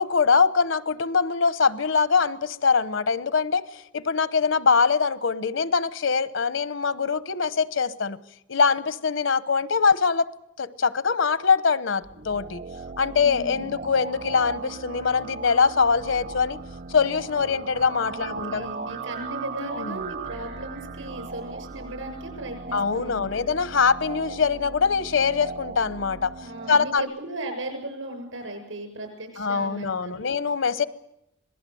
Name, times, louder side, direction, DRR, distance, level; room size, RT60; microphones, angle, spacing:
voice 1, 0.0-3.6 3.9-8.2 8.5-10.3 10.6-12.6 13.0-16.6 16.9-18.7 19.6-20.0 22.7-26.3 26.7-27.0 29.4-30.8, left 5 dB, 70° left, 15 dB, 1.0 m, -23 dB
sound 1, 12.0-27.0, right 4 dB, 45° right, 0.8 m, -38 dB
voice 2, 13.2-13.8 18.1-23.6 26.4-30.4, right 1 dB, 80° right, 6 dB, 7.3 m, -37 dB
26.0 x 19.0 x 7.8 m, 0.82 s
head